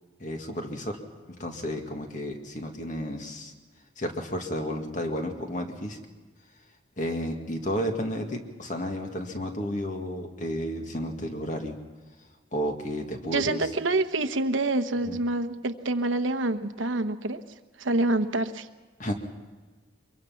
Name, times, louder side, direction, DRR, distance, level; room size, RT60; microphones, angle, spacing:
voice 1, 0.2-1.0 1.3-3.5 4.0-6.0 7.0-11.8 12.5-13.7 15.1-15.2 19.0-19.1, equal, 40° left, 4 dB, 2.0 m, -32 dB
voice 2, 13.3-17.4 17.8-18.7, right 2 dB, 80° right, 9 dB, 1.0 m, -27 dB
23.5 x 23.0 x 5.8 m, 1.3 s
head